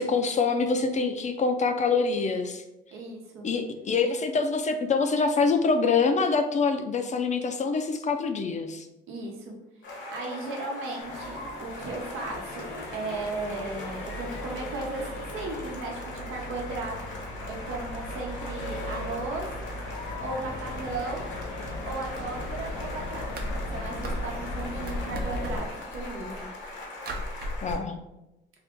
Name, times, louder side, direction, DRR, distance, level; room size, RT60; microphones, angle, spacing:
voice 1, 0.0-2.6 3.4-8.9 27.6-28.0, left 4 dB, 35° left, 6 dB, 0.4 m, -25 dB
voice 2, 2.9-3.5 9.1-9.5 10.1-15.1 15.3-16.9 17.5-19.5 20.2-21.3 21.8-26.5, right 3 dB, 90° right, 0 dB, 0.8 m, -36 dB
sound 1, 9.8-27.8, left 2 dB, 70° left, 1.1 m, -41 dB
Accelerating revving vroom, 11.0-25.6, left 1 dB, 90° left, 0.6 m, -37 dB
sound 2, 22.5-22.8 23.1-24.6 24.9-26.6 27.1-27.7, equal, 50° right, 0.6 m, -36 dB
2.6 x 2.4 x 3.6 m, 0.93 s
cardioid pair, 90°, 20 cm